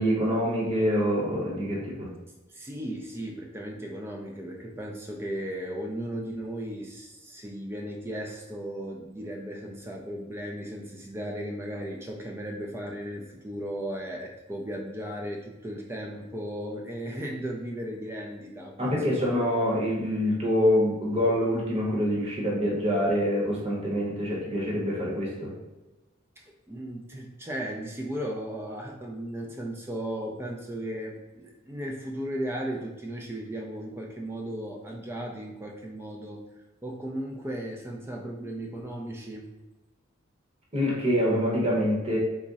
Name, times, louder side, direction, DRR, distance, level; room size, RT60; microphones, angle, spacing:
voice 1, 0.0-2.1 18.8-25.5 40.7-42.2, equal, 30° right, -4 dB, 0.8 m, -25 dB
voice 2, 2.5-19.4 26.7-36.4 36.8-39.5, right 1 dB, 10° right, 0 dB, 0.3 m, -36 dB
3.5 x 2.0 x 3.9 m, 1.1 s
head